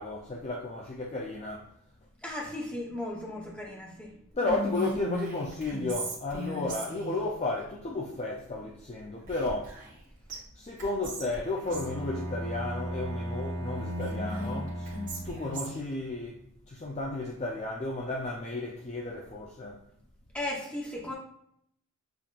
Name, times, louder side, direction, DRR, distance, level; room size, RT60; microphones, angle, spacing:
voice 1, 0.0-1.7 4.4-9.8 10.6-14.9 15.2-19.8, left 2 dB, 30° left, 0.4 m, -33 dB
voice 2, 2.2-4.1 20.3-21.1, left 1 dB, 5° left, 0.9 m, -36 dB
Whispering, 4.4-7.2 9.3-10.0 10.3-10.4 10.8-11.9 13.7-15.9, equal, 35° right, 1.3 m, -37 dB
Bowed string instrument, 11.6-15.6, right 1 dB, 80° right, 1.0 m, -36 dB
6.9 x 2.9 x 2.4 m
head